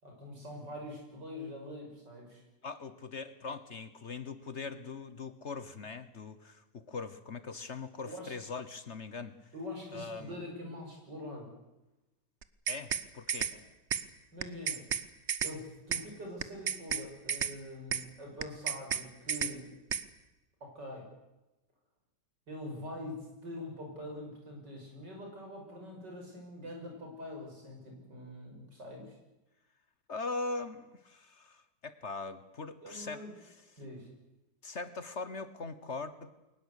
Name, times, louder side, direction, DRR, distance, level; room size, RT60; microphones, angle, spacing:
voice 1, 0.0-2.4 8.0-8.3 9.5-11.5 13.5-13.6 14.3-14.8 15.4-19.8 20.6-21.1 22.5-29.2 32.8-33.3 33.8-34.1, left 1 dB, 85° right, 1 dB, 7.0 m, -44 dB
voice 2, 2.6-9.3 9.9-10.4 12.7-13.5 30.1-33.6 34.6-36.3, left 3 dB, 45° left, 13 dB, 1.3 m, -41 dB
sound 1, 12.4-13.0 13.3-13.5 13.9-14.0 14.4-15.0 15.3-15.5 15.9-16.0 16.4-17.0 17.3-17.5 17.9-18.0 18.4-19.0 19.3-19.5 19.9-20.0, right 8 dB, 45° right, 1.2 m, -32 dB
22.5 x 19.5 x 8.3 m, 1.0 s
omnidirectional pair, 1.8 m